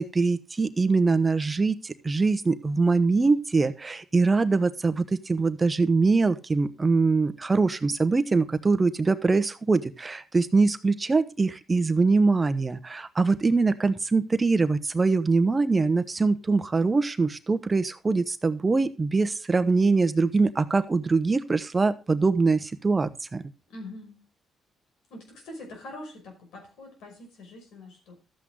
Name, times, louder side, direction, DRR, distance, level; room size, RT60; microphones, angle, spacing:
voice 1, 0.0-23.4, right 3 dB, 25° right, 12 dB, 0.9 m, -23 dB
voice 2, 23.7-24.2 25.1-28.1, left 1 dB, 85° left, 3 dB, 5.6 m, -43 dB
12.5 x 8.4 x 3.7 m, 0.32 s
cardioid pair, 90°, 0 cm